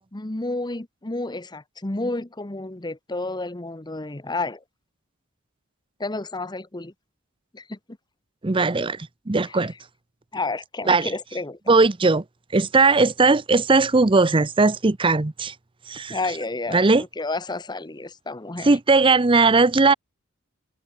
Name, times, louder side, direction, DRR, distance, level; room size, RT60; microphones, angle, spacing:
voice 1, 0.1-4.6 6.0-6.9 7.5-7.8 9.4-9.6 10.3-11.6 16.1-18.8, left 2 dB, 20° left, 1.0 m, -31 dB
voice 2, 8.4-9.7 10.9-11.1 11.7-12.2 12.5-15.5 15.9-16.2 16.7-17.0 18.6-19.9, right 3 dB, 25° right, 0.6 m, -18 dB
head